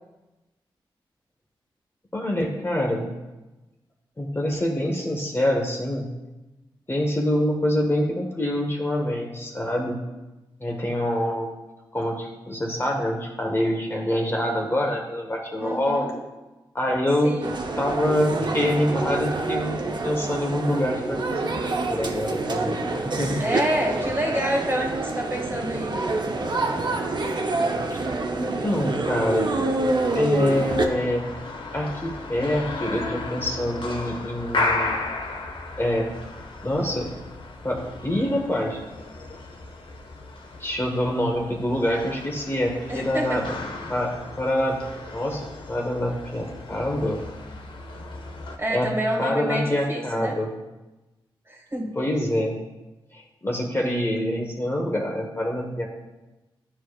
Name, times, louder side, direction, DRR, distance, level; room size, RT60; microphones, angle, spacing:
voice 1, 2.1-3.1 4.2-6.1 6.9-10.0 10.6-11.5 11.9-16.1 16.7-17.3 17.8-21.5 21.9-23.4 27.9-29.5 30.1-31.2 31.7-35.0 35.8-36.1 36.6-37.1 37.6-38.8 40.6-43.4 43.9-44.8 45.1-47.2 48.7-48.9 49.2-50.5 52.0-52.6 53.1-55.9, left 1 dB, 25° left, 0 dB, 1.0 m, -25 dB
voice 2, 15.6-16.1 17.2-17.6 23.4-26.0 42.9-43.5 48.6-50.3 51.5-51.9, right 1 dB, 25° right, -1 dB, 1.7 m, -28 dB
sound 1, 17.4-30.9, right 2 dB, 55° right, 0.7 m, -27 dB
sound 2, 30.5-48.6, left 3 dB, 65° left, 0.9 m, -34 dB
10.0 x 4.7 x 2.4 m, 1.1 s
cardioid pair, 55°, 9 cm